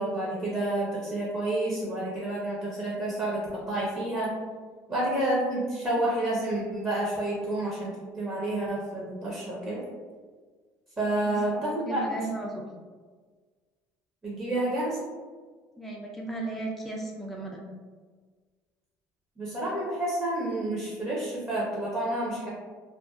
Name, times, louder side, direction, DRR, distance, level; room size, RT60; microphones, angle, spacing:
voice 1, 0.0-4.3 4.9-9.8 11.0-12.0 14.2-15.0 19.4-22.5, right 1 dB, 25° right, -6 dB, 0.7 m, -29 dB
voice 2, 11.2-12.7 15.8-17.6, right 2 dB, ahead, -2 dB, 0.3 m, -36 dB
2.5 x 2.1 x 2.3 m, 1.5 s
supercardioid pair, 100°, 8 cm